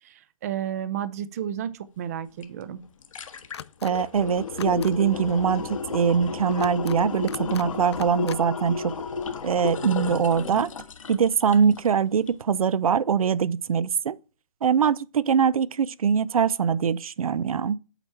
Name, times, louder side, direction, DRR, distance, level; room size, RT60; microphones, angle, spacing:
voice 1, 0.0-2.8, right 10 dB, 30° right, 0.4 m, -32 dB
sound 1, 2.4-2.5 2.8-11.9 12.3-12.4, left 6 dB, 70° left, 1.3 m, -33 dB
sound 2, 3.5-3.9 4.5-4.9 6.5-7.0 7.3-7.7 7.9-8.4, left 9 dB, 50° left, 0.4 m, -41 dB
voice 2, 3.8-8.9 9.4-10.7 11.1-14.2 14.6-17.8, right 7 dB, 85° right, 0.5 m, -23 dB
8.0 x 4.2 x 4.4 m
hypercardioid pair, 160°, 18 cm